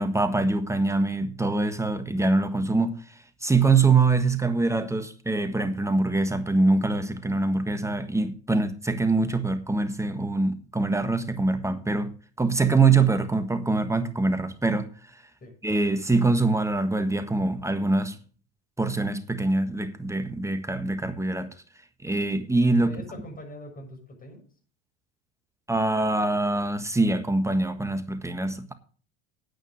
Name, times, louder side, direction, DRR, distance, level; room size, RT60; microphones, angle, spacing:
voice 1, 0.0-14.9 15.6-18.2 18.8-21.5 22.0-22.9 25.7-28.7, right 3 dB, 10° right, 1.5 m, -24 dB
voice 2, 22.8-24.4, left 1 dB, 25° left, 6.6 m, -42 dB
9.3 x 9.2 x 6.4 m
hypercardioid pair, 85°, 33 cm